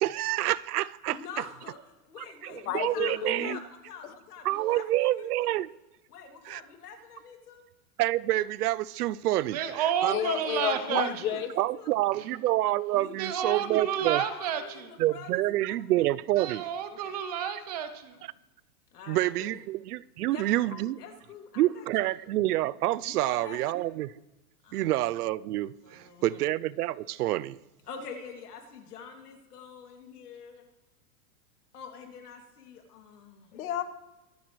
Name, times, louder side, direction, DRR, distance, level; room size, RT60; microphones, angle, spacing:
voice 1, 0.0-1.2 2.2-3.6 4.4-5.7 6.5-6.6 8.0-9.6 10.0-10.2 10.9-11.0 11.6-14.2 15.0-16.6 19.1-21.0 21.6-24.1 24.7-27.6, right 15 dB, 85° right, 20 dB, 0.6 m, -28 dB
voice 2, 1.1-1.8 2.1-5.6 6.1-7.7 10.1-12.0 12.9-13.7 14.0-16.1 16.9-17.2 18.9-19.6 20.3-20.4 20.7-21.9 23.1-23.7 24.6-24.8 25.8-26.4 27.9-30.7 31.7-33.5, left 6 dB, 90° left, 3 dB, 2.7 m, -46 dB
voice 3, 2.7-3.6 4.0-4.1 10.1-11.5 33.5-33.8, left 9 dB, 65° left, 10 dB, 1.2 m, -31 dB
voice 4, 9.5-11.4 12.1-12.3 13.2-14.9 16.4-18.2, right 9 dB, 25° right, 10 dB, 0.6 m, -31 dB
24.0 x 10.0 x 3.2 m, 1.1 s
supercardioid pair, 175°, 45 cm